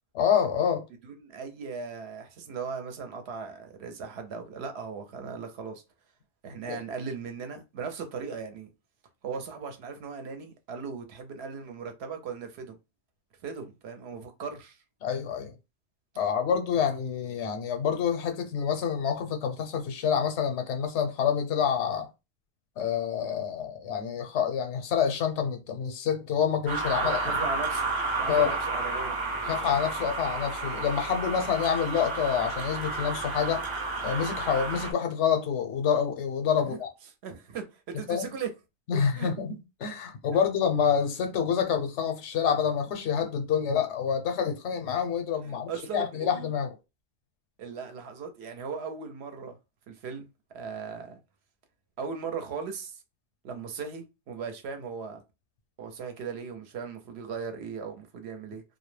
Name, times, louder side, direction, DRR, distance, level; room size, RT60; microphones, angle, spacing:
voice 1, 0.1-0.8 6.7-6.8 15.0-15.5 16.2-22.1 22.8-27.4 28.3-28.6 29.5-33.6 34.0-36.9 38.1-38.3 38.9-46.7, left 7 dB, 80° left, 0.9 m, -27 dB
voice 2, 1.0-5.8 6.4-8.7 9.2-12.8 13.4-14.8 27.0-27.8 28.2-29.2 36.7-36.8 37.2-38.5 39.2-39.3 40.3-40.4 45.4-46.5 47.6-49.5 49.9-50.3 50.5-51.2 52.0-53.0 53.4-55.2 55.8-58.6, right 5 dB, 70° right, 0.8 m, -38 dB
sound 1, 26.7-34.9, right 3 dB, 45° right, 0.4 m, -31 dB
2.2 x 2.1 x 3.1 m
omnidirectional pair, 1.2 m